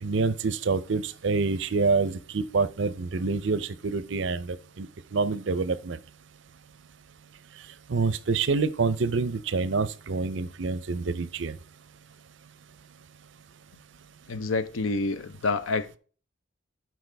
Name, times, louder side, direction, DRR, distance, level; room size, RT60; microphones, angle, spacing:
voice 1, 0.0-6.0 7.9-11.6, right 4 dB, 65° right, 0.6 m, -27 dB
voice 2, 14.3-16.0, left 3 dB, 85° left, 0.7 m, -28 dB
12.0 x 4.7 x 3.4 m
head